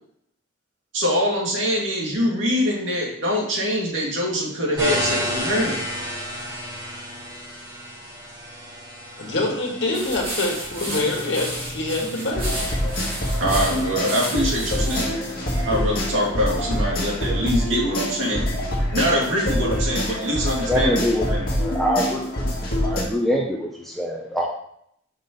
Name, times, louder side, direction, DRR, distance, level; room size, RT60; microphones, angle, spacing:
voice 1, 0.9-5.8 13.4-15.1 15.6-18.5 18.9-21.5, equal, 70° right, -3 dB, 2.3 m, -24 dB
sound 1, 4.8-16.0, equal, 20° right, 3.0 m, -33 dB
voice 2, 9.2-12.6, left 2 dB, 60° left, -1 dB, 1.7 m, -25 dB
sound 2, 9.9-15.1, right 1 dB, 40° right, 2.7 m, -33 dB
sound 3, 12.4-23.0, equal, 45° left, 1.6 m, -25 dB
voice 3, 20.7-21.3 21.5-22.5 22.8-24.5, equal, ahead, -1 dB, 0.6 m, -24 dB
5.6 x 5.6 x 3.9 m, 0.70 s
head